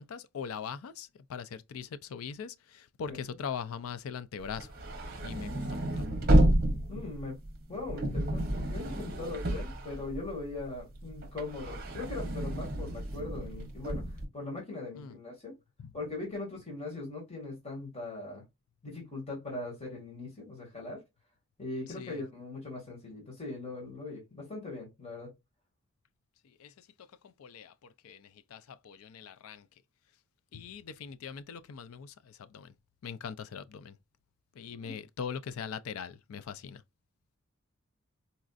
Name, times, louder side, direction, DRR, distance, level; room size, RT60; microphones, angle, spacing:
voice 1, 0.0-4.7 5.2-6.1 14.9-15.2 15.8-15.9 22.0-22.2 26.6-26.9 27.2-27.7 28.0-29.7 30.5-32.7 33.0-34.0 34.6-36.8, left 6 dB, 75° left, 0.4 m, -41 dB
sound 1, 4.5-10.6 10.9-14.3, right 1 dB, 45° right, 0.8 m, -30 dB
voice 2, 6.9-7.4 7.7-15.5 15.9-18.4 18.8-21.0 21.6-25.3 34.7-35.0, left 2 dB, 30° left, 1.5 m, -40 dB
4.1 x 2.5 x 2.3 m
head